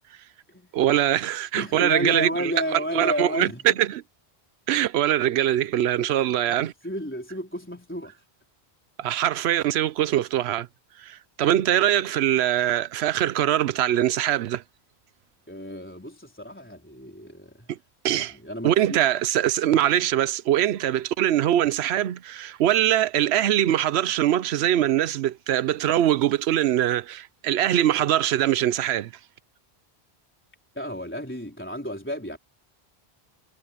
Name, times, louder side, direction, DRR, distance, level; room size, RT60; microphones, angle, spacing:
voice 1, 0.7-4.0 4.7-6.7 9.0-10.7 11.0-14.6 17.7-17.8 18.0-18.3 18.6-29.1, right 12 dB, 85° right, 0.9 m, -23 dB
voice 2, 1.6-3.6 6.0-8.1 15.5-17.7 18.1-19.0 30.8-32.4, equal, 10° left, 4.0 m, -32 dB
omnidirectional pair, 1.1 m